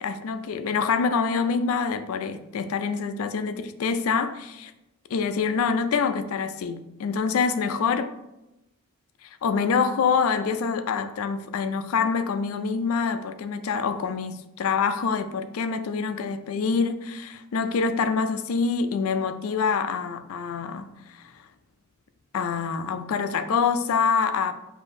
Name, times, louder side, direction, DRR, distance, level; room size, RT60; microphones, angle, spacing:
voice 1, 0.0-4.7 5.1-8.1 9.2-21.2 22.3-24.5, left 5 dB, 75° left, 0.4 m, -26 dB
6.8 x 2.7 x 2.6 m
head